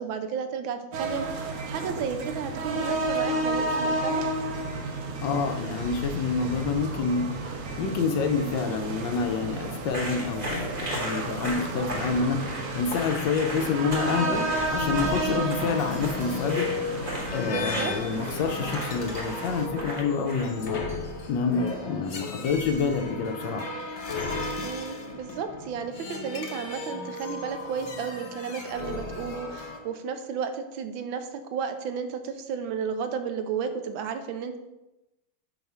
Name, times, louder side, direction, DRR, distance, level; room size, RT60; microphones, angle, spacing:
voice 1, 0.0-4.3 14.1-14.5 17.5-17.9 24.6-34.6, right 6 dB, 80° right, 8 dB, 1.4 m, -33 dB
sound 1, 0.9-19.7, right 2 dB, 60° right, 0.8 m, -32 dB
voice 2, 5.2-7.3 7.8-12.4 12.7-17.0 17.3-20.8 21.3-23.7, left 5 dB, 70° left, 5 dB, 1.2 m, -28 dB
sound 2, 9.9-20.7, equal, 30° right, 0.9 m, -36 dB
sound 3, 14.5-29.8, left 3 dB, 50° left, 0.9 m, -36 dB
4.8 x 4.6 x 5.4 m, 0.98 s
omnidirectional pair, 2.2 m